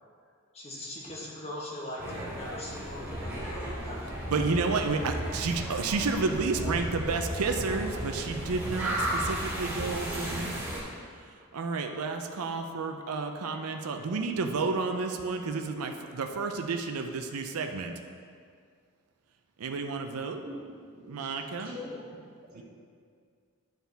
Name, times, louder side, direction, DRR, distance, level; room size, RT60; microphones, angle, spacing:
voice 1, 0.5-4.2, left 1 dB, 30° left, -4 dB, 1.3 m, -40 dB
sound 1, 2.0-10.8, equal, 10° right, 1.8 m, -34 dB
voice 2, 4.3-10.6 11.5-17.9 19.6-20.4 21.1-21.7 22.5-22.6, right 4 dB, 90° right, 5 dB, 0.5 m, -31 dB
voice 3, 20.4-21.3 21.6-22.2 22.5-22.6, left 1 dB, 40° right, -7 dB, 1.8 m, -43 dB
10.5 x 4.5 x 3.4 m, 2.2 s
head